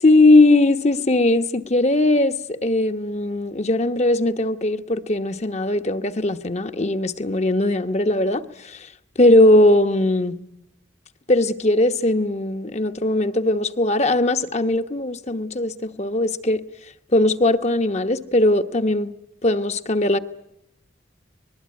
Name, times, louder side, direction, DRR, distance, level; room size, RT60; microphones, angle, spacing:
voice 1, 0.0-8.8 9.2-10.4 11.3-16.6 17.1-19.1 19.4-20.2, left 2 dB, 35° left, 1.0 m, -19 dB
24.5 x 20.5 x 9.6 m
head